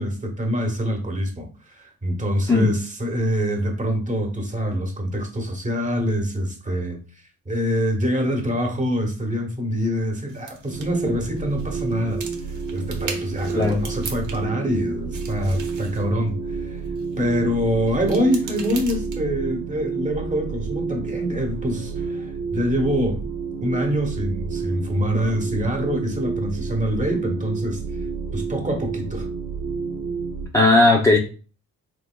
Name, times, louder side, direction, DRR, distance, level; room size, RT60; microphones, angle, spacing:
voice 1, 0.0-7.0 7.4-16.8 17.2-23.2 23.6-27.8 28.3-29.3, equal, 25° right, 3 dB, 1.1 m, -25 dB
sound 1, 10.3-14.7 14.9-17.2 17.8-19.5, right 5 dB, 70° right, 0.9 m, -39 dB
sound 2, 10.7-30.5, right 5 dB, 85° right, 1.2 m, -30 dB
voice 2, 30.5-31.2, left 2 dB, 10° left, -1 dB, 0.6 m, -16 dB
3.3 x 2.9 x 2.2 m, 0.35 s
cardioid pair, 80°, 32 cm